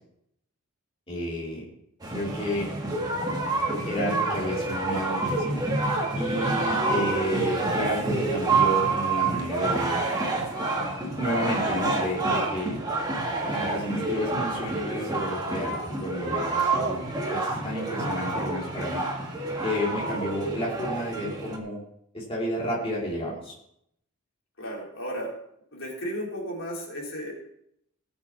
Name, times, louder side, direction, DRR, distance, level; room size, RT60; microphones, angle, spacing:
voice 1, 1.1-1.6 2.1-2.7 3.8-5.6 6.2-10.0 11.0-12.8 13.5-19.0 19.6-21.8 22.1-23.5, left 1 dB, 25° left, -5 dB, 3.0 m, -31 dB
Bogota Demonstration, 2.0-21.6, right 3 dB, 20° right, 1.8 m, -28 dB
voice 2, 24.6-25.3 25.7-27.3, equal, 65° left, -2 dB, 3.7 m, -34 dB
18.0 x 7.1 x 4.7 m, 0.75 s
head